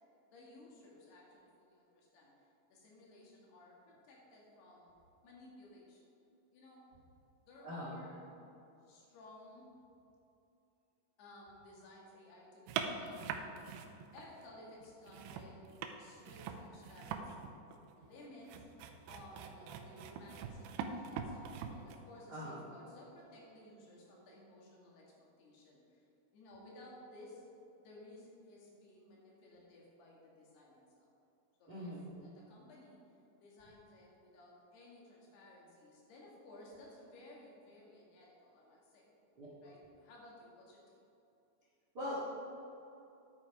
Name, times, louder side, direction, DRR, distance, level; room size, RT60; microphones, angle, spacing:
voice 1, 0.3-4.9 5.2-6.1 6.5-6.9 7.4-8.4 8.8-9.7 11.2-17.5 18.0-18.5 19.1-26.1 26.3-27.5 27.8-31.1 31.6-31.9 32.2-33.0 33.4-39.1 39.6-41.0, left 1 dB, 70° left, -3 dB, 3.9 m, -57 dB
voice 2, 7.6-8.0 22.3-22.6 31.7-32.1 39.3-39.5 41.9-42.2, left 1 dB, 40° right, -7 dB, 1.4 m, -42 dB
sound 1, 12.7-14.5 14.8-22.0, right 7 dB, 80° right, 2.5 m, -43 dB
10.0 x 8.6 x 4.9 m, 2.7 s
omnidirectional pair, 5.0 m